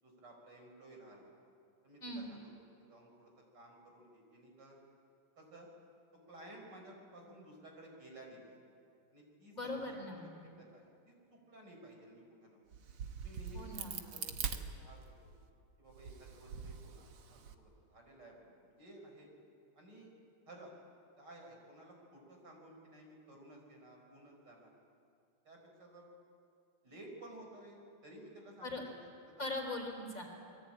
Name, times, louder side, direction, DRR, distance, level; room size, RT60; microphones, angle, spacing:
voice 1, 0.0-1.3 1.8-2.5 2.9-4.8 5.4-5.7 6.3-8.6 9.1-12.6 13.2-15.4 15.8-19.3 19.8-20.1 20.5-20.7 21.2-24.7 25.4-26.1 26.8-29.5, right 1 dB, 50° right, 1 dB, 5.7 m, -55 dB
voice 2, 9.5-10.3 13.5-14.0 28.6-28.8 29.4-30.2, left 2 dB, 40° left, 2 dB, 4.1 m, -40 dB
Crack, 12.7-15.4 15.9-17.6, right 7 dB, 80° right, 2.3 m, -43 dB
28.5 x 22.0 x 8.8 m, 2.4 s
omnidirectional pair, 2.4 m